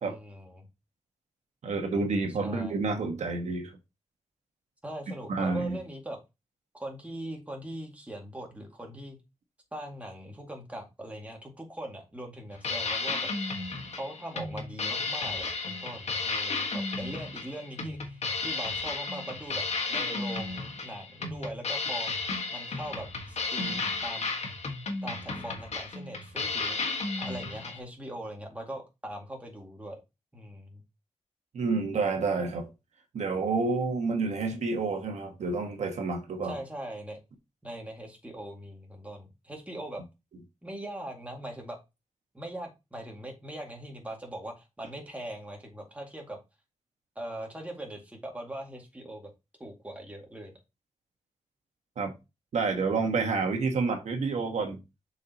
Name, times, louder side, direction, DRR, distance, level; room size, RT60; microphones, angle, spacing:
voice 1, 0.0-0.7 2.3-2.8 4.8-6.2 6.7-9.2 9.7-13.5 14.0-22.1 22.5-24.4 25.0-26.8 27.2-30.0 30.3-30.8 36.4-37.2 37.6-40.0 40.6-41.8 42.3-46.4 47.2-49.3 49.6-50.5, right 1 dB, 10° right, 1 dB, 2.1 m, -41 dB
voice 2, 1.6-3.7 5.3-5.8 31.5-32.7 33.1-36.6 52.0-52.1 52.5-54.8, right 4 dB, 80° right, 4 dB, 1.4 m, -29 dB
sound 1, 12.5-27.8, left 3 dB, 70° left, 1.5 m, -33 dB
6.9 x 4.8 x 2.9 m, 0.24 s
wide cardioid pair, 100°, 12 cm